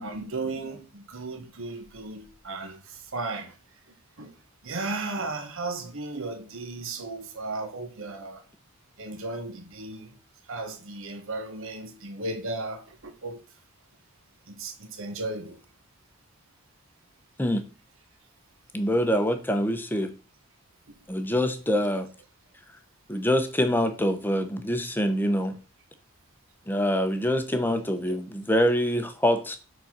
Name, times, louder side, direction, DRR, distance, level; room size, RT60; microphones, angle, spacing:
voice 1, 0.0-3.5 4.2-4.3 4.6-8.4 9.0-10.1 10.5-13.4 14.5-15.6 28.1-28.2, right 2 dB, 60° right, 1.2 m, -35 dB
voice 2, 18.7-20.1 21.1-22.1 23.1-25.6 26.7-29.6, equal, 10° left, 0.8 m, -25 dB
7.4 x 4.2 x 5.9 m
head